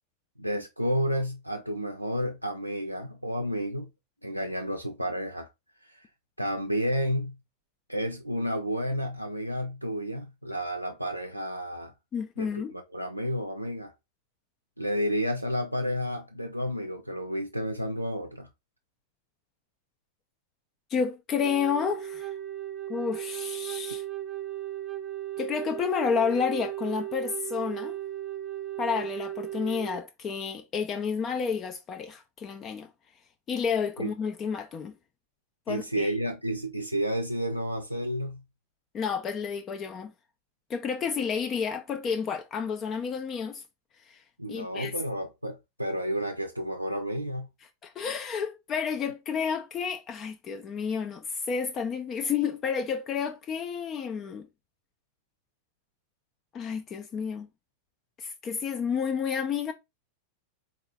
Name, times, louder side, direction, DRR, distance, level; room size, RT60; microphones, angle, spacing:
voice 1, 0.4-3.9 4.2-5.5 5.8-6.1 6.4-7.4 7.9-11.9 12.4-13.9 14.8-18.5 34.0-34.1 35.7-38.4 44.4-47.5, equal, 90° right, 0.4 m, -31 dB
voice 2, 12.1-12.7 20.9-22.3 22.9-24.0 25.4-28.0 28.8-32.9 33.5-34.9 35.7-36.1 38.9-40.1 40.7-43.6 44.0-44.2 44.5-45.0 47.8-54.5 56.5-57.5 58.2-59.7, left 6 dB, 30° left, 0.4 m, -30 dB
Wind instrument woodwind instrument, 21.4-30.0, right 13 dB, 20° right, 0.7 m, -36 dB
3.8 x 2.4 x 3.4 m
figure-of-eight pair, 90°, 0 cm